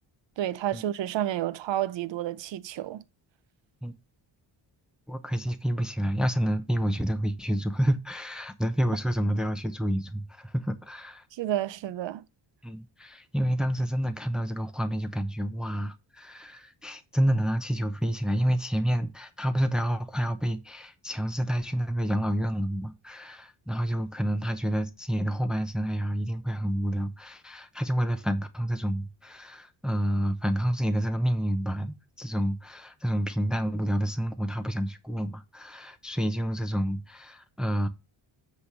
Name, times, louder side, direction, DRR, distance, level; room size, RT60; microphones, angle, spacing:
voice 1, 0.4-3.0 11.3-12.2, right 12 dB, 65° right, 0.7 m, -30 dB
voice 2, 5.1-11.2 12.6-37.9, equal, ahead, 0.9 m, -29 dB
8.0 x 3.4 x 6.0 m
cardioid pair, 70°, 48 cm